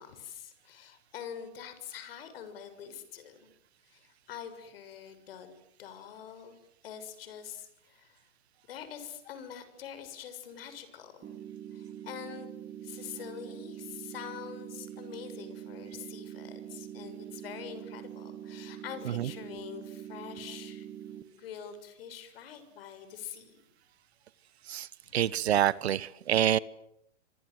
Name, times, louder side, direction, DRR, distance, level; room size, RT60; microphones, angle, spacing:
voice 1, 0.0-3.5 3.9-5.5 5.8-8.2 8.7-11.4 11.7-12.5 12.8-20.9 21.3-23.6 25.0-25.5, left 8 dB, 50° left, 10 dB, 6.9 m, -45 dB
sound 1, 11.2-21.2, right 10 dB, 15° right, 1.5 m, -44 dB
voice 2, 25.1-26.6, right 11 dB, 60° right, 19 dB, 1.2 m, -26 dB
29.5 x 25.5 x 8.0 m, 0.77 s
hypercardioid pair, 155°, 37 cm